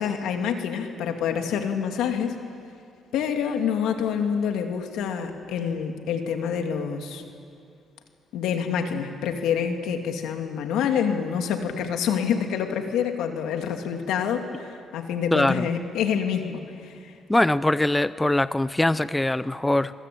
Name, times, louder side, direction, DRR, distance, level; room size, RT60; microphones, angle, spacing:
voice 1, 0.0-2.4 3.1-7.2 8.3-17.2, left 7 dB, 90° left, 5 dB, 2.5 m, -27 dB
voice 2, 15.3-15.7 17.3-19.9, left 1 dB, 10° left, 15 dB, 0.6 m, -22 dB
25.0 x 22.0 x 8.6 m, 2.4 s
cardioid pair, 90°, 0 cm